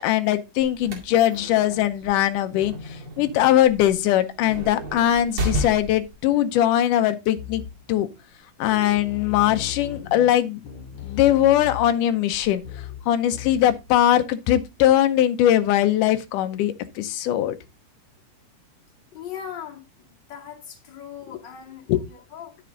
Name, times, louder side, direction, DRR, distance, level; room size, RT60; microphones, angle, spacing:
voice 1, 0.0-7.6 7.9-8.1 8.6-10.6 11.0-12.6 13.1-17.6 21.9-22.0, left 12 dB, 90° left, 2.3 m, -21 dB
sound 1, 0.6-6.2, equal, 45° right, 2.8 m, -33 dB
sound 2, 7.4-8.0 8.3-8.4 8.6-14.0, left 9 dB, 65° left, 2.6 m, -38 dB
voice 2, 19.1-22.6, left 8 dB, 35° left, 2.5 m, -39 dB
10.0 x 6.8 x 3.8 m
omnidirectional pair, 3.7 m